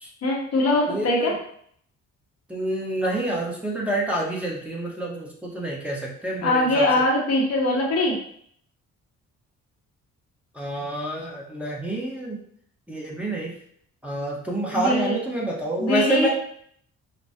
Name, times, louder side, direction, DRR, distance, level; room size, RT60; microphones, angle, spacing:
voice 1, 0.2-1.3 6.4-8.2 14.7-15.2 15.8-16.3, left 1 dB, 55° left, -2 dB, 1.0 m, -22 dB
voice 2, 0.9-1.3 2.5-6.8 10.5-12.4 12.9-13.5 14.0-16.3, right 1 dB, 5° right, -4 dB, 1.1 m, -27 dB
5.2 x 2.3 x 2.7 m, 0.64 s
cardioid pair, 90°, 30 cm